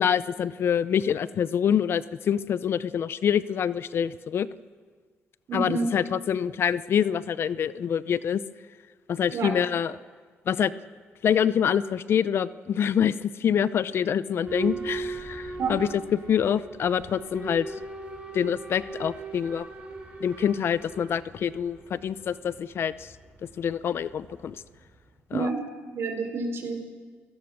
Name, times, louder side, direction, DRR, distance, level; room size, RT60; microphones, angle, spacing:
voice 1, 0.0-4.5 5.5-8.4 9.1-9.9 10.5-10.7 11.2-17.7 18.3-19.7 20.2-23.1 23.6-24.6 25.3-25.5, left 8 dB, 60° left, 17 dB, 0.6 m, -26 dB
voice 2, 5.5-5.8 9.3-9.5 15.6-15.8 25.3-25.6 25.9-26.9, right 4 dB, 60° right, 5 dB, 4.5 m, -29 dB
Boat Water vehicle / Alarm, 14.4-25.1, right 3 dB, 25° right, 4.8 m, -39 dB
29.0 x 17.5 x 6.5 m, 1.5 s
cardioid pair, 90°, 5 cm